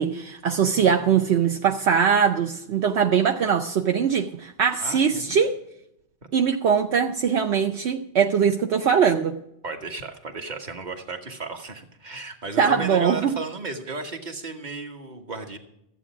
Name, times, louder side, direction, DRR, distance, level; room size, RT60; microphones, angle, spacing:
voice 1, 0.0-5.5 6.3-9.4 12.6-13.3, right 7 dB, 70° right, 4 dB, 1.0 m, -21 dB
voice 2, 4.8-5.4 9.6-15.6, right 3 dB, 40° right, 4 dB, 1.5 m, -34 dB
14.5 x 8.3 x 6.0 m, 0.79 s
omnidirectional pair, 1.2 m